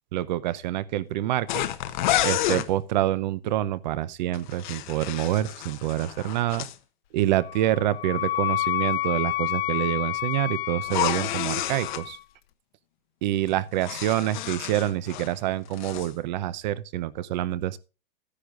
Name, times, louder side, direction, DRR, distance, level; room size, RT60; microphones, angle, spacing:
voice 1, 0.1-1.6 2.2-6.7 7.1-12.2 13.2-17.8, right 13 dB, 50° right, 0.7 m, -27 dB
sound 1, 1.5-2.7 4.3-6.7 10.8-12.0 13.5-15.4 15.7-16.1, left 14 dB, 50° left, 0.9 m, -30 dB
Wind instrument woodwind instrument, 7.4-12.2, left 16 dB, 80° left, 0.5 m, -29 dB
13.5 x 9.9 x 2.5 m
supercardioid pair, 155°, 30 cm